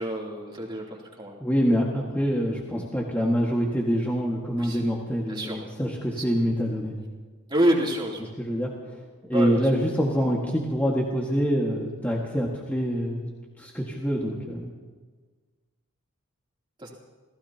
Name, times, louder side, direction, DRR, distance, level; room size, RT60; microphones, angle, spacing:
voice 1, 0.0-1.4 4.5-4.8 5.3-5.6 6.1-6.2 7.5-8.3 9.3-9.5 16.8-16.9, right 1 dB, 20° right, -2 dB, 3.0 m, -27 dB
voice 2, 1.4-6.9 8.4-9.0 9.3-13.3 13.6-14.7, equal, 10° left, -3 dB, 1.7 m, -25 dB
30.0 x 16.0 x 2.9 m, 1.4 s
head